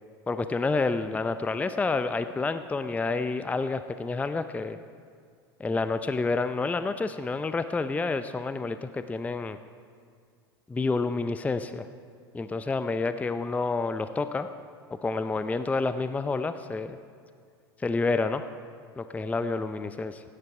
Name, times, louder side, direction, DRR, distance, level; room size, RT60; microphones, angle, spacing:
voice 1, 0.3-4.8 5.6-9.6 10.7-11.8 12.3-14.5 14.9-17.0 17.8-18.4 19.0-20.2, left 3 dB, 10° left, 11 dB, 0.5 m, -29 dB
16.5 x 10.0 x 4.8 m, 2.2 s
hypercardioid pair, 85°, 13 cm